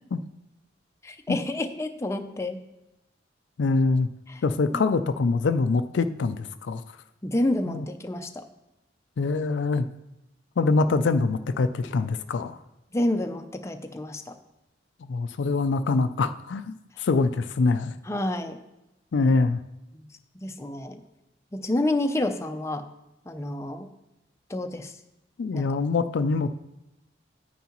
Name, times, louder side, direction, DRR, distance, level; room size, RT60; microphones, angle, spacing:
voice 1, 1.0-2.6 4.3-4.4 4.7-4.8 7.2-8.4 12.9-14.3 18.1-18.6 19.9-20.1 20.4-21.0 21.5-22.8 23.3-23.9 24.5-24.9 25.5-25.6, left 1 dB, 15° left, 6 dB, 0.5 m, -29 dB
voice 2, 3.6-4.1 4.4-6.8 7.7-7.8 9.2-9.9 10.6-12.6 15.0-17.9 19.1-19.6 25.4-26.5, left 3 dB, 70° left, 10 dB, 0.4 m, -24 dB
9.3 x 9.2 x 3.0 m, 0.92 s
head